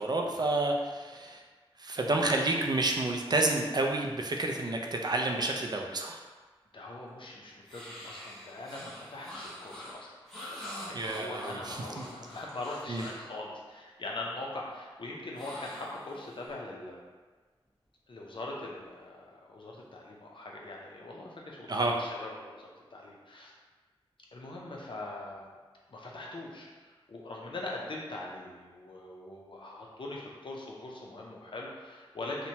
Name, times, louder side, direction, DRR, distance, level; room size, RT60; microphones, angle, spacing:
voice 1, 0.0-1.4 1.8-6.2 10.9-12.0 12.9-13.1 21.7-21.9, right 2 dB, 45° right, 1 dB, 0.3 m, -30 dB
voice 2, 6.7-10.1 10.5-17.0 18.1-23.5 24.3-25.5 25.9-32.5, left 2 dB, 60° left, -2 dB, 0.5 m, -42 dB
sound 1, 7.7-13.3 15.3-16.5, left 1 dB, ahead, 1.1 m, -45 dB
2.8 x 2.1 x 2.7 m, 1.4 s
wide cardioid pair, 60°, 10 cm